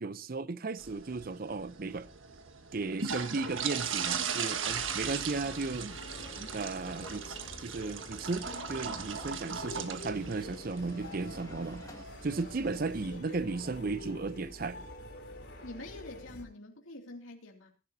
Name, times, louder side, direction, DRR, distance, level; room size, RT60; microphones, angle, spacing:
voice 1, 0.0-2.1 2.7-6.0 6.4-11.9 12.2-14.8, right 3 dB, 45° right, 0.6 m, -35 dB
sound 1, 0.8-13.2, right 6 dB, 75° right, 1.4 m, -38 dB
sound 2, 4.4-12.1, left 1 dB, 15° left, 2.0 m, -55 dB
sound 3, 4.6-16.4, left 1 dB, 55° left, 2.7 m, -47 dB
voice 2, 15.6-17.7, left 2 dB, 80° left, 2.7 m, -46 dB
21.5 x 11.5 x 2.7 m
head